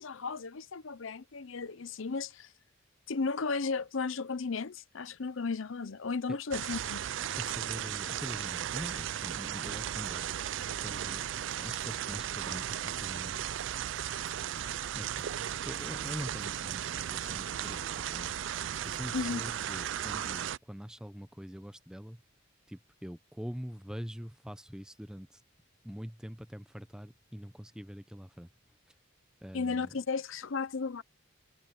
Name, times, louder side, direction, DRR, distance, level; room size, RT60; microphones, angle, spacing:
voice 1, 0.0-2.5 3.1-7.0 19.1-19.4 29.5-31.0, left 4 dB, 65° left, 0.7 m, -34 dB
sound 1, 6.5-20.6, right 10 dB, 60° right, 0.4 m, -36 dB
voice 2, 7.4-10.4 10.8-11.3 11.6-13.4 14.9-15.3 15.6-22.2 22.7-25.4 25.8-28.5 28.9-29.0 29.4-30.0, equal, 5° right, 0.6 m, -44 dB
sound 2, 9.7-19.4, right 3 dB, 80° right, 0.9 m, -54 dB
head